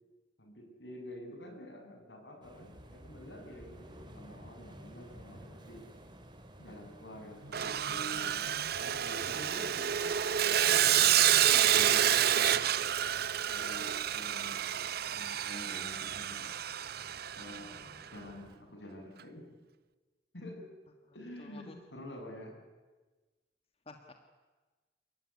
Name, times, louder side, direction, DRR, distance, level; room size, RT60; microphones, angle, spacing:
voice 1, 0.4-5.8 6.6-10.2 10.6-11.0 11.5-12.6 13.5-14.6 15.1-16.5 17.4-17.8 18.1-19.6 20.3-20.7 21.1-22.6, left 1 dB, 75° left, 3 dB, 7.0 m, -48 dB
sound 1, 2.4-18.6, right 1 dB, 25° right, 3.1 m, -54 dB
sound 2, 7.1-13.9, equal, 90° right, 5.2 m, -54 dB
Sawing, 7.5-17.8, right 10 dB, 60° right, 0.7 m, -29 dB
voice 2, 17.7-18.0 21.4-21.7 23.9-24.1, left 2 dB, 35° left, 5 dB, 1.7 m, -52 dB
28.5 x 15.5 x 9.7 m, 1.3 s
head